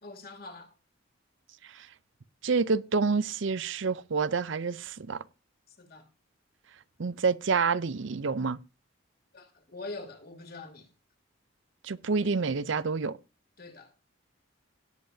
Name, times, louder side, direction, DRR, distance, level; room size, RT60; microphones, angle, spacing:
voice 1, 0.0-0.7 5.8-6.0 9.3-10.9 13.6-13.9, left 3 dB, 45° left, 2.8 m, -43 dB
voice 2, 2.4-5.2 7.0-8.6 11.8-13.2, right 4 dB, 60° right, 0.5 m, -28 dB
17.5 x 8.3 x 2.7 m
head